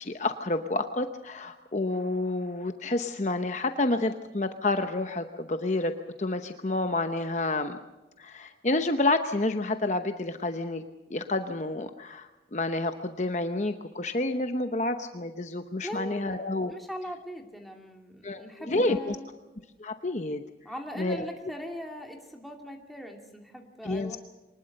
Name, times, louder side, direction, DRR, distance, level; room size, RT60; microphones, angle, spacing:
voice 1, 0.0-5.9 6.2-7.8 8.2-10.8 11.1-16.7 18.2-19.2 19.8-20.4 21.0-21.3 23.8-24.2, left 2 dB, 40° left, 7 dB, 0.9 m, -29 dB
voice 2, 15.8-16.4 16.7-19.3 20.6-24.2, equal, ahead, 1 dB, 2.4 m, -40 dB
24.5 x 19.5 x 6.6 m, 1.1 s
head